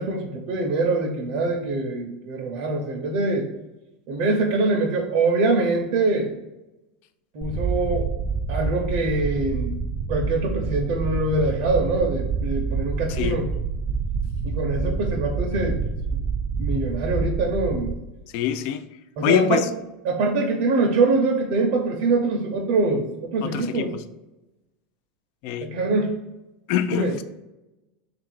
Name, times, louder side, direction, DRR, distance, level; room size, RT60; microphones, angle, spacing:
voice 1, 0.0-3.5 4.1-6.3 7.3-8.1 8.5-9.7 10.1-13.5 14.4-15.8 16.1-16.2 16.6-18.0 19.2-19.7 20.0-24.0 25.6-26.2 27.0-27.1, right 3 dB, 60° right, -1 dB, 0.7 m, -24 dB
sound 1, 7.4-17.9, right 5 dB, 30° right, 0.4 m, -27 dB
voice 2, 18.3-18.8 19.2-19.6 23.4-23.9 25.4-25.7 26.7-27.2, left 10 dB, 60° left, 11 dB, 0.4 m, -24 dB
3.5 x 2.5 x 4.6 m, 1.0 s
supercardioid pair, 130°, 4 cm